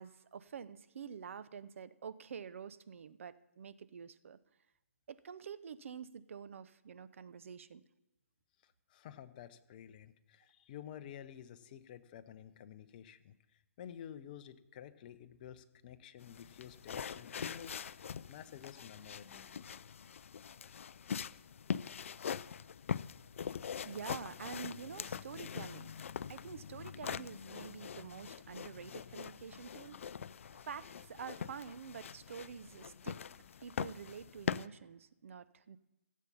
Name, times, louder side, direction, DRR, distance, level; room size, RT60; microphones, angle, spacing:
voice 1, 0.0-4.4 5.1-7.8 23.8-25.9 26.3-30.1 30.6-33.2 33.6-35.8, right 7 dB, 60° right, 14 dB, 0.6 m, -47 dB
voice 2, 8.6-19.5, left 9 dB, 35° left, 11 dB, 0.7 m, -51 dB
sound 1, 16.2-34.7, left 7 dB, 60° left, 0.3 m, -43 dB
16.0 x 7.4 x 5.5 m, 0.99 s
hypercardioid pair, 145°, 8 cm